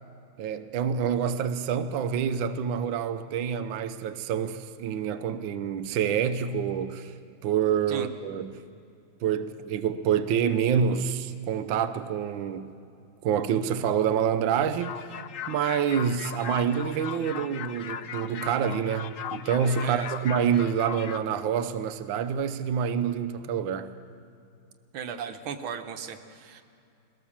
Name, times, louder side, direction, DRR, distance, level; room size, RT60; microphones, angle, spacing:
voice 1, 0.4-7.1 7.4-8.6 9.2-12.7 13.2-14.9 15.5-23.9, right 8 dB, 75° right, 1.5 m, -27 dB
sound 1, 14.8-21.2, left 8 dB, 65° left, 0.8 m, -38 dB
voice 2, 19.8-20.2 24.9-26.6, right 7 dB, 90° right, 1.9 m, -36 dB
22.0 x 17.5 x 7.3 m
omnidirectional pair, 2.2 m